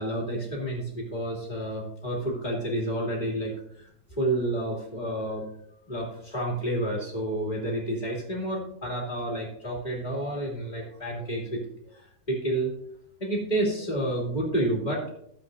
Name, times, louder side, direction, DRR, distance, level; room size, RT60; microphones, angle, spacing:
voice 1, 0.0-3.5 3.8-5.4 5.9-11.6 11.9-12.8 13.2-15.0, right 1 dB, 20° left, -3 dB, 2.5 m, -30 dB
15.5 x 7.7 x 2.7 m, 0.70 s
omnidirectional pair, 2.1 m